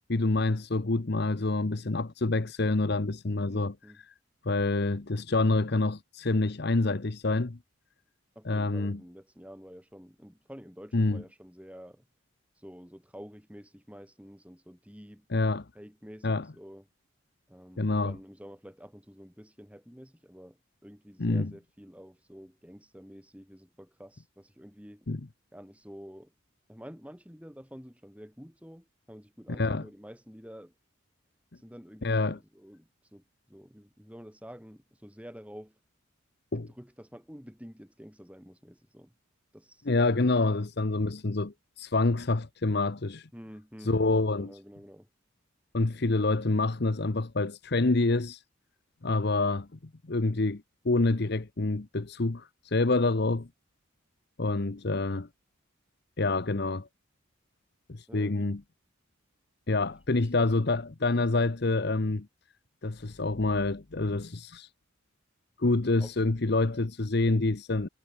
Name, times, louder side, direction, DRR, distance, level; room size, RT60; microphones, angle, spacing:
voice 1, 0.1-3.7 4.4-7.6 8.5-9.0 10.9-11.2 15.3-15.7 16.2-16.4 17.8-18.1 21.2-21.5 25.1-25.2 29.5-29.8 32.0-32.4 36.5-36.7 39.9-43.3 43.8-44.5 45.7-48.4 49.0-49.7 50.1-53.5 54.4-55.3 56.2-56.9 57.9-58.6 59.7-62.3 62.8-64.7 65.6-67.9, left 2 dB, 50° left, 0.9 m, -27 dB
voice 2, 3.5-4.0 8.3-12.1 12.5-15.3 15.7-16.9 17.5-25.1 25.5-26.3 26.7-30.7 31.5-35.8 36.5-39.1 39.5-39.9 40.9-41.0 43.3-45.1 56.5-56.6 58.1-58.5 59.9-60.3 66.0-66.3, equal, 5° right, 6.7 m, -49 dB
head